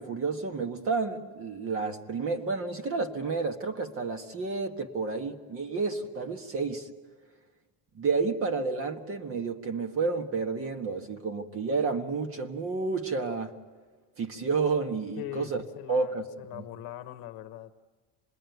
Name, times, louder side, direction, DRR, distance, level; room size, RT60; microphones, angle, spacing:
voice 1, 0.0-6.9 7.9-13.5 14.2-15.6 15.9-16.2 16.5-16.6, right 4 dB, 30° right, 6 dB, 1.5 m, -30 dB
voice 2, 15.2-17.7, left 12 dB, 50° left, 11 dB, 1.2 m, -41 dB
27.0 x 21.0 x 9.4 m, 1.3 s
cardioid pair, 175°, 46 cm